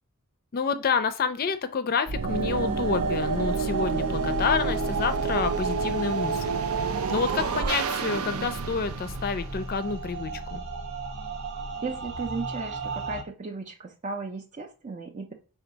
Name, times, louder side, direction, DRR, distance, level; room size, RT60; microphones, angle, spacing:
voice 1, 0.5-10.6, left 5 dB, 45° left, 11 dB, 0.4 m, -29 dB
sound 1, 2.1-10.2, right 4 dB, 90° right, 0.5 m, -28 dB
sound 2, 4.4-13.2, right 3 dB, 75° right, 1.0 m, -38 dB
voice 2, 11.8-15.3, right 3 dB, 35° right, 2 dB, 0.5 m, -35 dB
4.5 x 2.3 x 3.9 m, 0.34 s
head